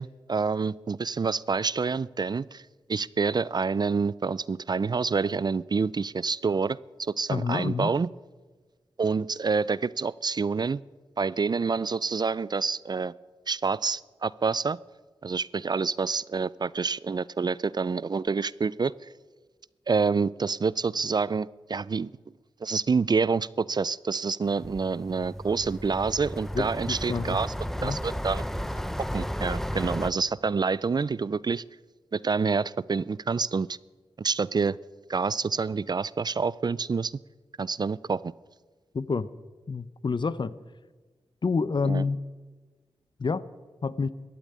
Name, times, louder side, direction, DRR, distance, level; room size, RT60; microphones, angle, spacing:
voice 1, 0.0-2.6 2.9-8.1 9.0-10.8 11.2-13.1 13.5-14.8 15.2-18.9 19.9-22.1 22.6-27.5 27.8-28.4 29.1-31.6 32.1-33.8 34.2-34.8 35.1-37.1 37.6-38.3 41.8-42.0, right 4 dB, 40° right, 21 dB, 0.4 m, -27 dB
voice 2, 7.3-7.9 26.5-27.4 27.8-28.0 38.9-39.3 39.7-40.5 41.4-42.2 43.2-43.4 43.8-44.1, left 4 dB, 50° left, 17 dB, 0.6 m, -28 dB
sound 1, 24.4-30.1, equal, 5° left, 0.7 m, -34 dB
13.5 x 8.8 x 9.4 m, 1.3 s
cardioid pair, 45°, 10 cm